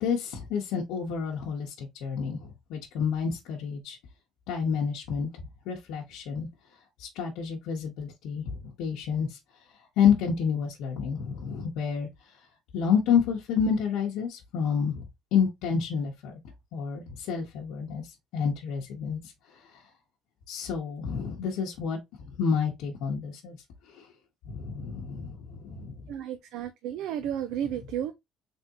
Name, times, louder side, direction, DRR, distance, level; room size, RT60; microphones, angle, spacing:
voice 1, 0.0-4.0 4.5-6.5 7.0-9.4 10.0-12.1 12.7-15.1 15.3-16.3 16.7-18.0 18.3-19.2 20.5-22.0 22.4-23.6 24.5-26.0, left 7 dB, 80° left, 0.9 m, -29 dB
voice 2, 26.1-28.1, right 10 dB, 70° right, 0.5 m, -32 dB
3.6 x 3.5 x 2.8 m
cardioid pair, 175°, 0 cm